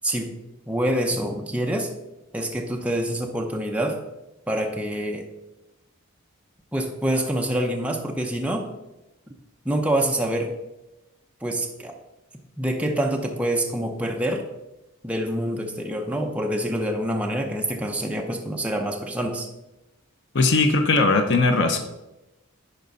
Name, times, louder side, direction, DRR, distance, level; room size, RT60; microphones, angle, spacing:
voice 1, 0.0-0.4 0.7-1.9 2.3-4.0 4.5-5.3 6.7-8.7 9.6-10.6 11.4-12.0 12.6-14.5 15.0-19.5, right 1 dB, 5° right, 2 dB, 0.6 m, -26 dB
voice 2, 20.3-21.8, left 3 dB, 55° left, 5 dB, 0.7 m, -19 dB
10.5 x 4.5 x 4.0 m, 0.97 s
head